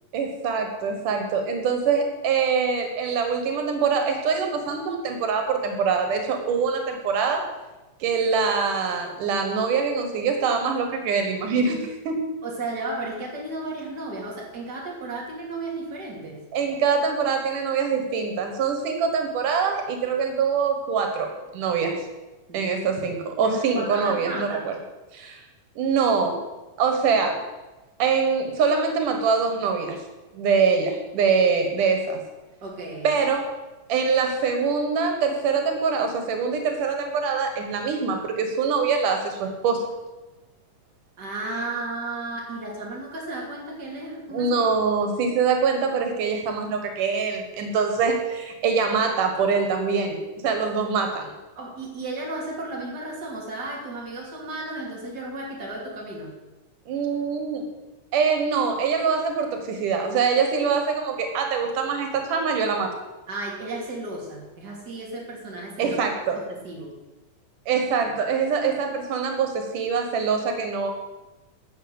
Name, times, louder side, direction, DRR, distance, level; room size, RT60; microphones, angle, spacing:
voice 1, 0.1-7.4 8.0-12.2 16.5-22.0 22.5-24.8 25.1-25.4 25.8-26.4 26.8-27.4 28.0-30.0 30.3-32.2 33.0-33.5 33.9-39.8 44.3-51.3 56.9-57.6 58.1-62.9 65.8-66.4 67.7-70.9, right 5 dB, 85° right, 4 dB, 3.1 m, -24 dB
voice 2, 12.4-16.5 22.5-22.7 23.4-24.7 32.6-33.1 41.2-44.5 51.5-56.4 63.3-66.1 66.4-67.0, right 2 dB, 30° right, -2 dB, 3.4 m, -34 dB
12.5 x 6.8 x 8.0 m, 1.1 s
omnidirectional pair, 3.6 m